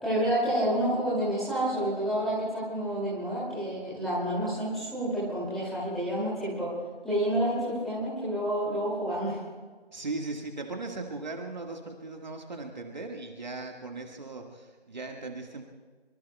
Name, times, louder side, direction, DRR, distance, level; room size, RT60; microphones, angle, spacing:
voice 1, 0.0-6.7 7.0-9.4, right 1 dB, ahead, -10 dB, 2.6 m, -29 dB
voice 2, 9.9-15.6, right 3 dB, 45° right, 2 dB, 1.7 m, -38 dB
26.0 x 24.0 x 2.3 m, 1.4 s
figure-of-eight pair, 165°, 31 cm